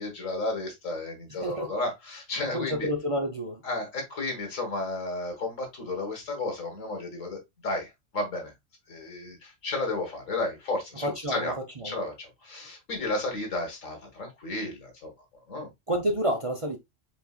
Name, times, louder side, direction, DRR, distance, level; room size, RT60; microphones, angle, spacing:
voice 1, 0.0-2.9 3.6-8.5 8.9-11.5 11.8-15.1 15.5-15.7, left 2 dB, 80° left, 2.1 m, -33 dB
voice 2, 2.5-3.6 11.0-11.5 11.8-12.0 15.9-16.8, equal, 35° right, 0.6 m, -29 dB
5.2 x 4.1 x 2.4 m
omnidirectional pair, 1.3 m